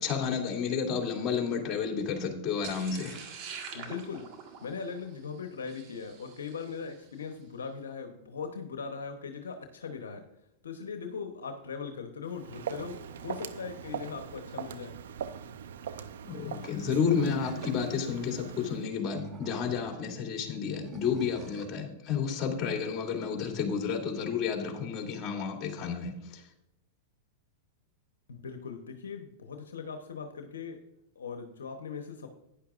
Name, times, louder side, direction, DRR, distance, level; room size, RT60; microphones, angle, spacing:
voice 1, 0.0-3.2 16.2-26.4, left 6 dB, 35° left, 1 dB, 2.7 m, -31 dB
sound 1, 2.6-6.9, right 6 dB, 45° right, 1.6 m, -45 dB
voice 2, 3.7-4.3 4.6-10.2 10.6-13.0 13.2-15.0 28.3-30.8 31.2-32.3, left 5 dB, 85° left, 6 dB, 0.9 m, -39 dB
Walk footsteps, 12.3-18.9, right 8 dB, 75° right, 0.6 m, -41 dB
Animal, 17.0-18.2 18.9-20.0 20.8-21.8, right 4 dB, 30° right, 1.3 m, -45 dB
11.5 x 10.0 x 2.5 m, 0.85 s
hypercardioid pair, 110°, 0 cm